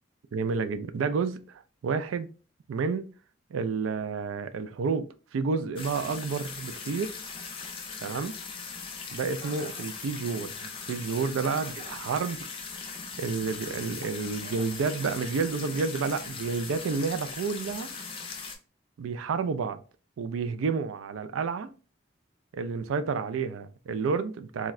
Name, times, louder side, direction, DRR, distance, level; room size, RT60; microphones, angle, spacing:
voice 1, 0.3-2.3 2.7-3.1 3.5-7.1 8.0-8.4 9.1-12.4 13.2-17.9 19.0-19.8 20.2-21.7 22.5-24.7, right 5 dB, 85° right, 0.3 m, -30 dB
sound 1, 5.8-18.6, left 5 dB, 25° left, 0.4 m, -39 dB
Chuckle chortle, 9.4-9.9 11.5-12.1 14.4-14.8, right 1 dB, 40° right, 0.8 m, -47 dB
3.6 x 2.1 x 2.3 m
head